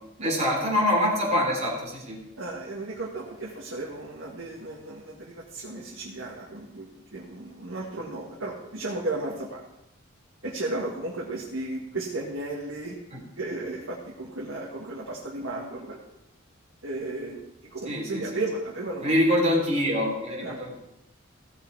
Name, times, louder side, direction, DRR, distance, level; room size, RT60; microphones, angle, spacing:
voice 1, 0.2-2.2 13.1-13.2 17.9-18.4 19.0-20.8, left 1 dB, 35° right, -2 dB, 3.4 m, -25 dB
voice 2, 2.3-9.6 10.4-13.0 13.4-16.0 16.8-19.2 20.4-20.6, right 2 dB, 70° right, -3 dB, 1.9 m, -34 dB
15.5 x 6.9 x 4.7 m, 0.85 s
head